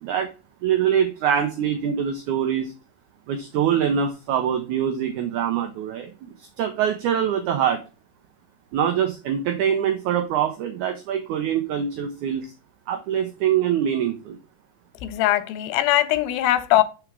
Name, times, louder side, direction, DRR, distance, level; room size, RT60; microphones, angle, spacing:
voice 1, 0.6-2.7 3.3-7.8 8.7-12.5 12.9-14.4, right 9 dB, 85° right, 1.7 m, -24 dB
voice 2, 15.0-16.8, left 14 dB, 85° left, 2.4 m, -21 dB
4.9 x 4.6 x 4.6 m
omnidirectional pair, 4.2 m